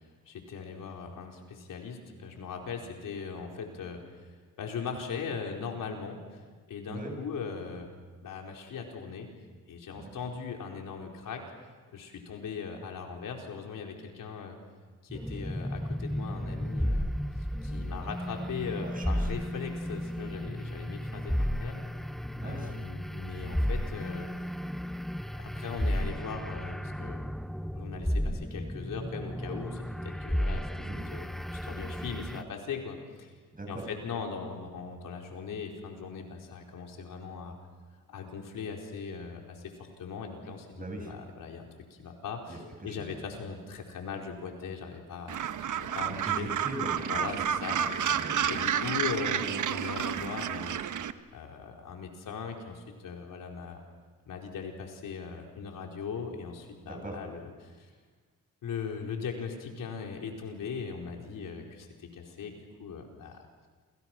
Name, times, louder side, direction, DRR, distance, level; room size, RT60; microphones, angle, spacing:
voice 1, 0.0-4.2 4.6-7.9 8.2-9.3 9.7-11.4 11.9-14.6 15.0-17.1 17.6-21.8 22.4-24.3 25.2-27.2 27.7-33.3 33.7-37.6 38.1-45.4 45.8-46.5 47.1-47.8 48.5-50.8 51.3-53.8 54.3-57.9 58.6-63.5, left 6 dB, 75° left, 1 dB, 4.6 m, -39 dB
sound 1, 15.1-32.4, equal, ahead, 0.8 m, -33 dB
voice 2, 18.8-19.3 22.3-22.7 30.8-31.0 33.5-33.8 40.8-41.1 42.5-43.2 46.0-47.3 47.8-48.6 56.8-57.2, right 2 dB, 25° right, 2 dB, 7.4 m, -40 dB
Gull seagull, 45.3-51.1, right 8 dB, 65° right, 1.2 m, -30 dB
29.5 x 28.0 x 6.1 m, 1.4 s
cardioid pair, 85°, 32 cm